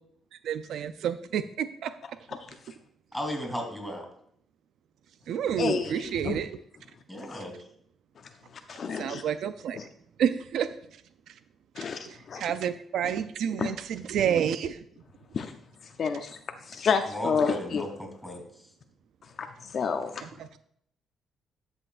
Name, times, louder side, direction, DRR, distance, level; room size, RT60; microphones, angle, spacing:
voice 1, 0.3-1.9 5.3-6.6 8.9-9.8 10.2-11.0 11.3-11.4 11.8-14.8 20.2-20.6, right 8 dB, 75° right, 12 dB, 0.4 m, -30 dB
voice 2, 3.1-4.1 7.1-7.5 17.1-18.4, equal, ahead, 1 dB, 3.2 m, -35 dB
voice 3, 5.6-6.4 7.3-7.4 8.7-9.2 9.7-9.8 11.8-12.0 12.3-12.4 13.6-13.7 15.3-15.5 16.0-16.4 16.7-17.9 19.4-20.2, left 6 dB, 50° left, 7 dB, 0.5 m, -29 dB
12.5 x 6.2 x 2.5 m, 0.67 s
cardioid pair, 90°, 0 cm